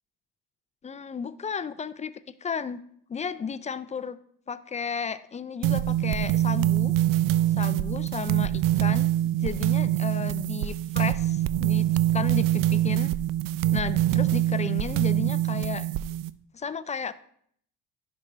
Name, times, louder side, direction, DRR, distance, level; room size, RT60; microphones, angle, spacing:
voice 1, 0.8-2.1 2.4-2.8 3.1-4.2 4.5-7.0 7.6-9.1 9.4-11.9 12.1-13.1 13.7-15.9 16.5-17.1, left 6 dB, 20° left, 14 dB, 0.3 m, -33 dB
sound 1, 5.6-16.3, right 13 dB, 65° right, 0.5 m, -24 dB
10.5 x 5.2 x 3.3 m, 0.67 s
cardioid pair, 90°, 36 cm